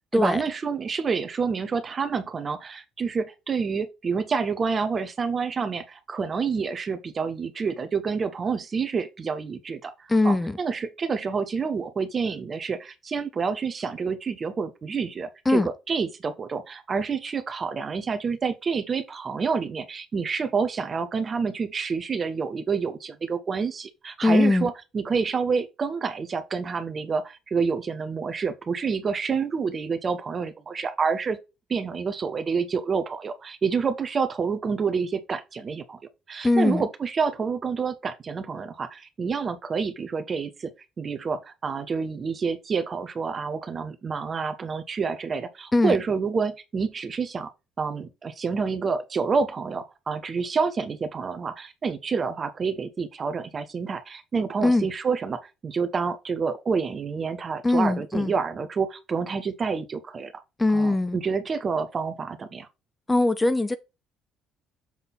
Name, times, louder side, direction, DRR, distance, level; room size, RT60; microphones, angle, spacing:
voice 1, 0.1-9.9 10.2-31.4 31.7-36.0 36.3-40.7 41.0-47.5 47.8-60.3 60.7-62.7, right 5 dB, 40° right, 1.3 m, -28 dB
voice 2, 10.1-10.6 15.4-15.7 24.2-24.7 36.4-36.9 45.7-46.0 54.6-54.9 57.6-58.3 60.6-61.2 63.1-63.8, left 2 dB, 15° left, 0.8 m, -21 dB
7.6 x 3.9 x 4.2 m
hypercardioid pair, 60°, 0 cm